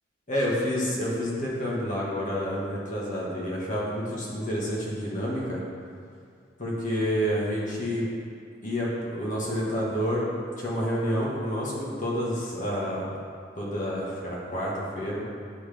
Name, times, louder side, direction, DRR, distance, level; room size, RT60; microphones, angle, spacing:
voice 1, 0.3-5.6 6.6-8.1 8.6-10.3 10.6-13.1 13.6-15.2, equal, 40° left, -5 dB, 1.5 m, -29 dB
9.7 x 3.6 x 3.4 m, 2.3 s
head